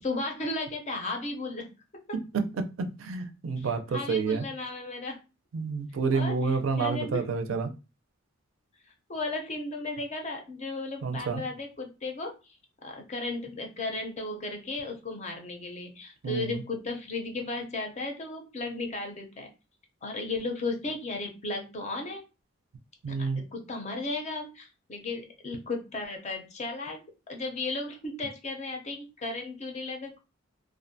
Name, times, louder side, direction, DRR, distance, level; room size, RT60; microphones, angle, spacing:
voice 1, 0.0-1.7 3.6-5.2 6.1-7.3 9.1-12.3 12.8-19.5 20.0-22.2 23.1-27.0 27.3-30.2, left 2 dB, 35° left, 3 dB, 0.5 m, -35 dB
voice 2, 2.3-4.4 5.5-7.7 11.0-11.4 16.2-16.5 23.0-23.4, right 4 dB, 85° right, 7 dB, 0.4 m, -29 dB
2.5 x 2.1 x 2.6 m, 0.29 s
head